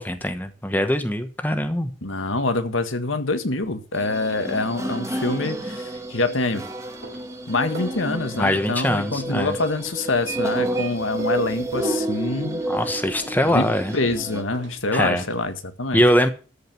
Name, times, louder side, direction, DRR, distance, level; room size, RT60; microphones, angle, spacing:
voice 1, 0.0-1.9 8.4-9.6 12.7-13.9 14.9-15.2 15.9-16.3, equal, 10° left, 8 dB, 1.2 m, -22 dB
voice 2, 2.0-6.6 7.5-12.6 13.5-13.7 13.9-16.0, left 2 dB, 90° left, 8 dB, 1.8 m, -25 dB
sound 1, 3.9-14.4, right 1 dB, 15° right, 1.4 m, -30 dB
sound 2, 5.9-15.7, right 2 dB, 70° right, 3.9 m, -46 dB
14.0 x 5.2 x 9.3 m, 0.35 s
head